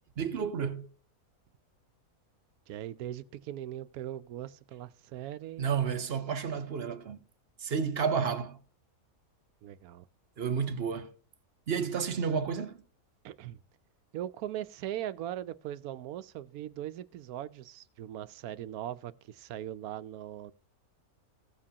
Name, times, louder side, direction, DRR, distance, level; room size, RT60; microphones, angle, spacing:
voice 1, 0.2-0.9 5.6-7.2 7.6-8.6 10.4-11.1 11.7-12.8, right 6 dB, 50° right, 0.9 m, -31 dB
voice 2, 2.7-5.8 9.6-10.0 13.2-13.6 14.1-20.5, right 12 dB, 85° right, 1.1 m, -40 dB
15.5 x 7.4 x 2.8 m
omnidirectional pair, 1.5 m